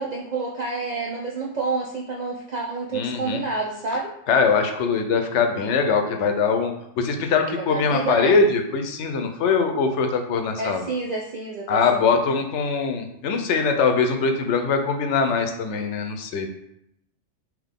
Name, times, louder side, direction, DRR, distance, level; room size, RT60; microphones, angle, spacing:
voice 1, 0.0-4.1 7.6-8.3 10.6-12.2, right 3 dB, 65° right, -2 dB, 0.4 m, -29 dB
voice 2, 2.9-3.4 4.3-10.8 11.7-16.5, left 5 dB, 75° left, 5 dB, 0.9 m, -22 dB
3.6 x 3.0 x 3.6 m, 0.78 s
omnidirectional pair, 1.3 m